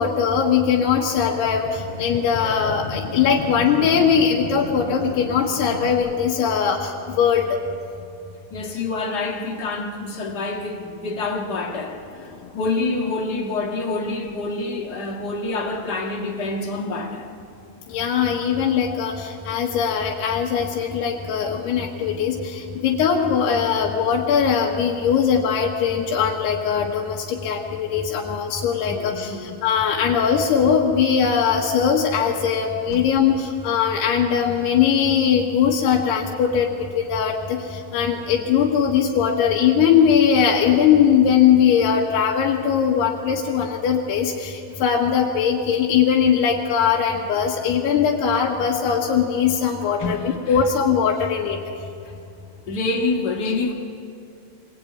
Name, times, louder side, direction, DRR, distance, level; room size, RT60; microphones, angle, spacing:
voice 1, 0.0-7.6 17.9-36.7 36.9-51.6, left 7 dB, 85° left, 3.7 m, -20 dB
sound 1, 1.1-5.9, left 1 dB, 15° left, 2.0 m, -33 dB
voice 2, 8.5-17.3 28.9-29.5 32.9-33.0 49.8-50.6 52.0-52.1 52.7-53.7, left 3 dB, 70° left, 0.9 m, -27 dB
25.0 x 18.5 x 9.3 m
omnidirectional pair, 4.6 m